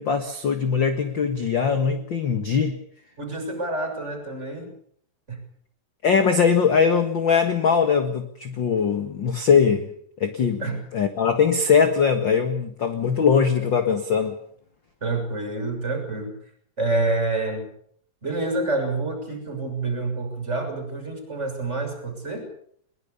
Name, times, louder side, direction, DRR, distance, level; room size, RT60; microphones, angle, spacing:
voice 1, 0.0-2.8 6.0-9.9 10.2-14.4, left 6 dB, 45° left, 8 dB, 1.9 m, -21 dB
voice 2, 3.2-4.7 5.3-5.4 10.6-10.8 15.0-16.3 16.8-17.6 18.2-22.5, right 2 dB, 20° right, 5 dB, 6.5 m, -27 dB
22.5 x 21.5 x 6.9 m, 0.63 s
omnidirectional pair, 3.9 m